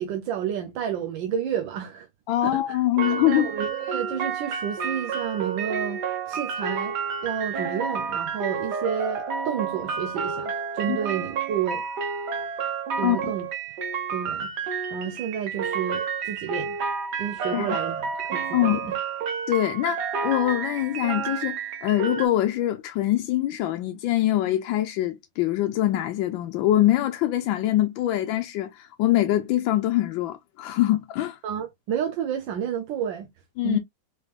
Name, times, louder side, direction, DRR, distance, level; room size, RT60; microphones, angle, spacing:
voice 1, 0.0-2.1 2.4-2.8 3.1-7.0 7.2-11.9 13.0-13.5 14.1-14.5 14.9-16.8 17.2-19.0 31.4-33.3 33.6-33.8, right 8 dB, 80° right, 1.4 m, -30 dB
voice 2, 2.3-3.5 10.9-11.0 13.0-13.3 17.5-17.8 18.5-18.9 19.5-31.4 33.6-33.8, left 14 dB, 85° left, 1.3 m, -24 dB
sound 1, 3.0-22.3, right 6 dB, 65° right, 1.6 m, -30 dB
4.8 x 3.5 x 2.4 m
omnidirectional pair, 2.0 m